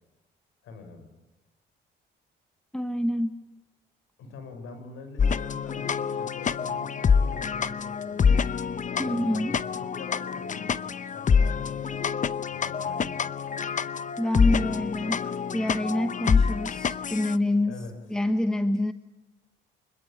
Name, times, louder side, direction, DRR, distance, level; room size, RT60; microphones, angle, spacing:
voice 1, 0.6-1.1 4.2-8.5 9.0-13.3 17.7-18.0, left 3 dB, 85° left, 8 dB, 5.9 m, -44 dB
voice 2, 2.7-3.4 9.0-9.6 14.2-17.7 18.1-18.9, left 1 dB, 5° left, 9 dB, 1.1 m, -27 dB
sound 1, 5.2-17.4, left 6 dB, 40° left, 0.8 m, -26 dB
26.0 x 21.5 x 8.8 m, 1.0 s
cardioid pair, 90°, 20 cm